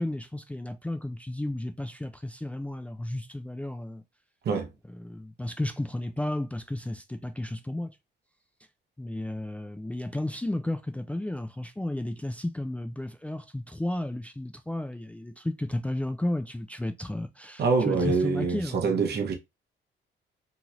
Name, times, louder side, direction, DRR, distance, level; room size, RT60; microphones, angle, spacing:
voice 1, 0.0-4.0 4.9-7.9 9.0-19.2, left 1 dB, 5° left, 0.3 m, -33 dB
voice 2, 17.6-19.3, right 4 dB, 55° right, 0.8 m, -25 dB
2.8 x 2.4 x 3.0 m
cardioid pair, 90°, 20 cm